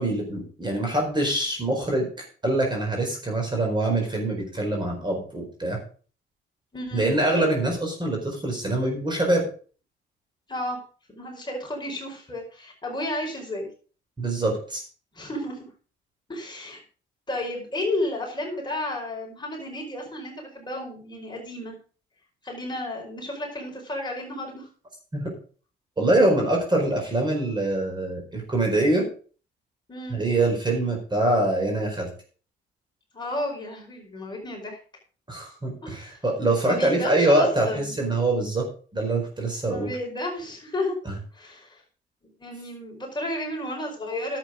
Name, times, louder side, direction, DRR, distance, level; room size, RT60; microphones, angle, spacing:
voice 1, 0.0-2.1 2.4-5.8 6.9-9.4 14.2-14.8 25.1-25.3 26.0-29.1 30.1-32.1 35.3-38.6 38.9-39.9 41.0-41.1, right 2 dB, 20° right, 1 dB, 4.7 m, -24 dB
voice 2, 6.7-7.1 10.5-10.8 11.1-13.7 15.1-15.7 16.3-16.8 17.3-21.7 22.4-24.7 29.9-30.2 33.1-34.8 35.8-36.2 36.7-37.9 39.6-40.9 41.3-41.8 42.4-44.4, left 1 dB, 20° left, -1 dB, 4.9 m, -32 dB
11.0 x 8.2 x 5.1 m, 0.40 s
cardioid pair, 90°, 20 cm